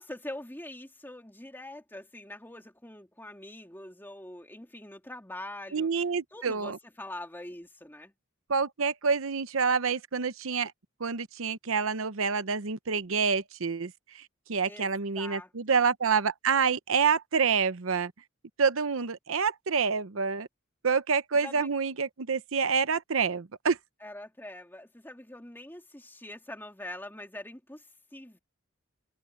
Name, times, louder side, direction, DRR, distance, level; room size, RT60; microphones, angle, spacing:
voice 1, 0.0-5.9 6.3-8.1 14.6-15.8 21.4-21.7 24.0-28.4, left 1 dB, 10° left, 2.9 m, -44 dB
voice 2, 5.7-6.8 8.5-10.7 11.0-18.1 18.6-20.5 20.8-23.8, right 5 dB, 80° right, 0.8 m, -27 dB
head